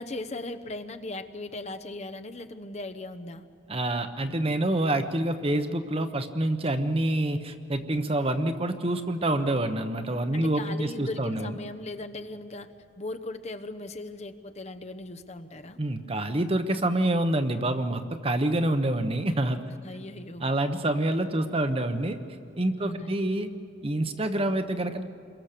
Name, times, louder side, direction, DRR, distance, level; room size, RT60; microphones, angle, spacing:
voice 1, 0.0-3.5 10.3-15.8 19.8-20.5 22.8-23.2, left 2 dB, 35° left, 8 dB, 1.0 m, -38 dB
voice 2, 3.7-11.6 15.8-19.6 20.4-22.2 22.6-23.5 23.8-25.0, right 1 dB, 30° right, 8 dB, 1.0 m, -27 dB
28.5 x 23.0 x 6.8 m, 2.5 s
head